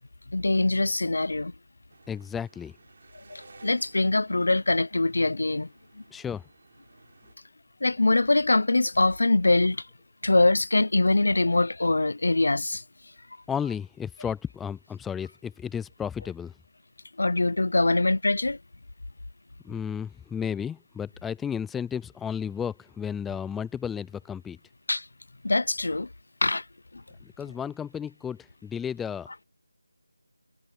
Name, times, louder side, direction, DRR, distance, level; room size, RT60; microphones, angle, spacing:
voice 1, 0.3-1.5 3.3-5.7 7.8-9.9 10.2-12.8 17.2-18.6 24.9-25.1 25.4-26.1 26.4-26.6, left 2 dB, 65° left, 0.7 m, -23 dB
sound 1, 1.9-7.3, right 4 dB, 40° right, 3.9 m, -56 dB
voice 2, 2.1-2.8 6.1-6.4 13.5-16.5 19.6-24.6 27.2-29.3, left 7 dB, 5° left, 0.3 m, -33 dB
figure-of-eight pair, 175°, 0 cm